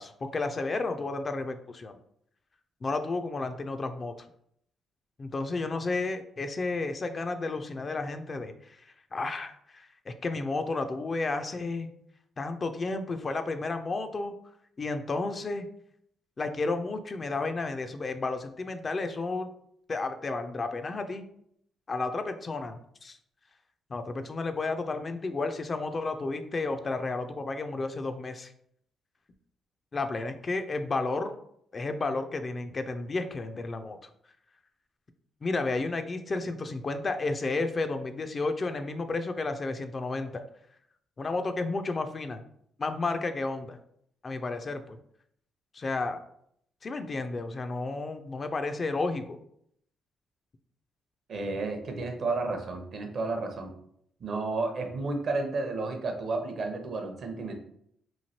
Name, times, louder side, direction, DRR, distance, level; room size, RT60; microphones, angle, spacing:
voice 1, 0.0-1.9 2.8-4.3 5.2-11.9 12.4-14.3 14.8-15.7 16.4-19.5 19.9-21.2 21.9-23.2 23.9-28.5 29.9-31.3 31.7-34.0 35.4-40.4 41.2-42.4 42.8-43.8 44.2-45.0 45.7-46.2 46.8-49.4, left 3 dB, 35° left, 8 dB, 0.3 m, -32 dB
voice 2, 51.3-53.7 54.2-57.5, right 3 dB, 60° right, 4 dB, 0.6 m, -32 dB
3.0 x 2.5 x 2.7 m, 0.69 s
cardioid pair, 80°, 0 cm